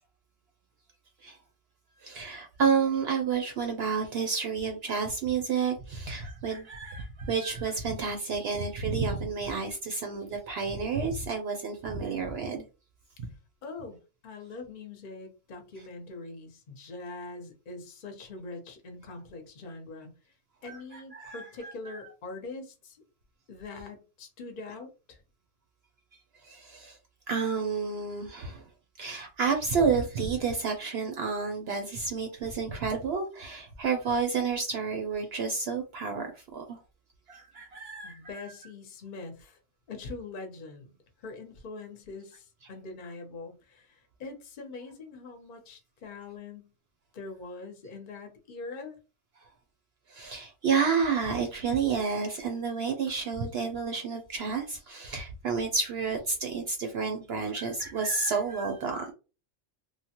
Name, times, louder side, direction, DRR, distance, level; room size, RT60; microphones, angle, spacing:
voice 1, 2.0-12.6 20.6-21.7 26.4-27.0 27.3-28.6 29.0-36.8 37.3-38.2 50.1-59.1, right 5 dB, 65° right, 4 dB, 0.7 m, -30 dB
voice 2, 13.6-20.3 20.6-23.0 23.5-25.2 38.0-39.6 39.9-40.9 41.2-46.7 47.1-49.0, left 3 dB, 45° left, 4 dB, 0.7 m, -43 dB
3.1 x 2.1 x 2.8 m, 0.32 s
omnidirectional pair, 1.3 m